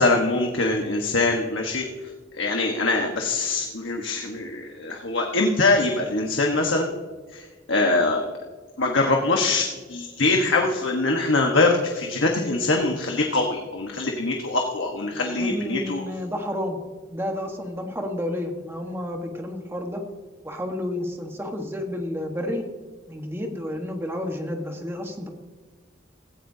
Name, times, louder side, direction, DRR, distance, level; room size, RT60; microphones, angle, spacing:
voice 1, 0.0-1.8 2.4-6.9 7.3-8.3 8.8-16.0, left 2 dB, 80° left, 1 dB, 1.3 m, -23 dB
voice 2, 15.1-16.8 17.1-20.0 20.4-22.6 23.1-25.3, left 1 dB, 10° right, 3 dB, 1.4 m, -31 dB
17.0 x 14.5 x 2.8 m, 1.4 s
head